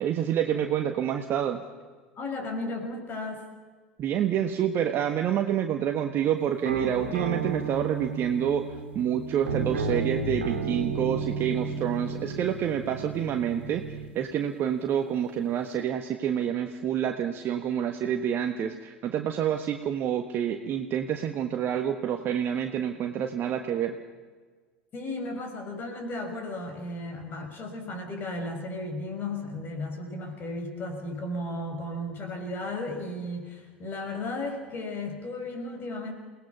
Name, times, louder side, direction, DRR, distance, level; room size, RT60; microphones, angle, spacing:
voice 1, 0.0-1.6 4.0-8.7 8.9-24.0, right 9 dB, 35° right, 5 dB, 1.4 m, -28 dB
voice 2, 2.2-3.4 24.9-36.1, left 2 dB, 35° left, 5 dB, 5.4 m, -34 dB
sound 1, 6.7-14.1, right 4 dB, 75° right, 2.5 m, -33 dB
28.5 x 18.5 x 5.8 m, 1.4 s
figure-of-eight pair, 75°, 6 cm